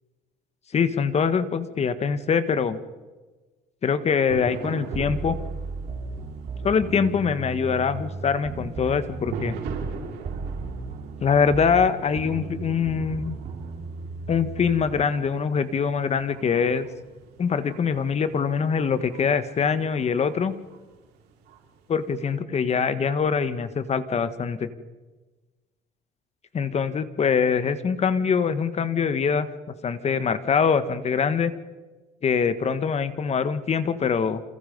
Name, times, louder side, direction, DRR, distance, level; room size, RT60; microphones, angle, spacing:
voice 1, 0.7-2.8 3.8-5.4 6.6-9.5 11.2-13.4 14.3-16.9 17.4-20.5 21.9-24.7 26.5-31.5 32.2-34.4, left 6 dB, 40° left, 12 dB, 1.7 m, -23 dB
sound 1, 4.3-22.3, right 5 dB, 85° right, 6.1 m, -42 dB
sound 2, 4.9-10.0 10.2-15.0, right 4 dB, 40° right, 3.9 m, -35 dB
28.5 x 28.0 x 5.4 m, 1.3 s
cardioid pair, 110°, 17 cm